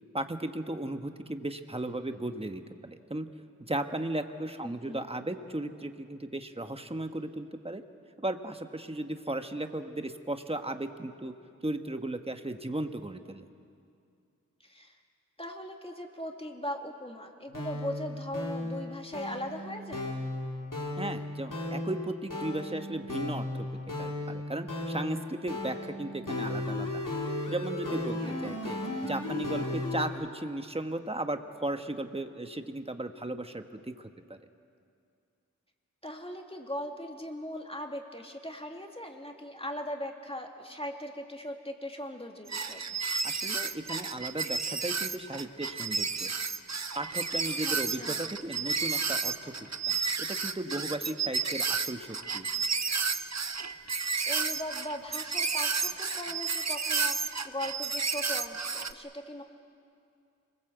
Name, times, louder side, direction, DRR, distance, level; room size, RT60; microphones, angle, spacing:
voice 1, 0.1-3.3 3.6-7.8 8.2-11.3 11.6-13.4 21.0-23.7 24.0-27.1 27.5-28.8 29.0-34.4 43.2-46.3 47.0-52.1 52.3-52.4, right 1 dB, 20° right, 7 dB, 1.3 m, -36 dB
voice 2, 4.6-5.0 14.6-15.0 15.4-20.0 27.9-28.4 36.0-42.8 47.6-48.2 53.9-59.4, equal, 20° left, 2 dB, 2.5 m, -39 dB
sound 1, 17.5-30.1, left 2 dB, 85° left, 3.8 m, -35 dB
sound 2, 42.5-58.9, right 5 dB, 60° right, 0.9 m, -31 dB
27.5 x 20.5 x 8.0 m, 2.4 s
wide cardioid pair, 45°, 31 cm